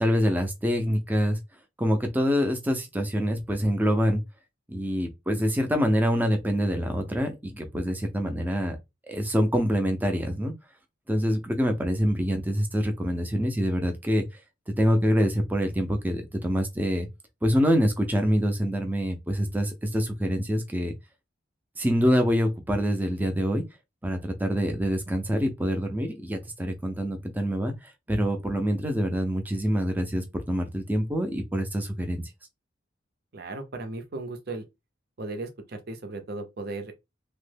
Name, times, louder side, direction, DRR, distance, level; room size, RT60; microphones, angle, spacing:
voice 1, 0.0-1.4 1.8-4.2 4.7-8.8 9.1-10.5 11.1-14.3 14.7-17.1 17.4-20.9 21.8-23.6 24.0-32.3, equal, 10° right, 0.5 m, -25 dB
voice 2, 33.3-34.6 35.2-37.0, right 2 dB, 50° right, 0.6 m, -36 dB
3.0 x 2.1 x 3.3 m
head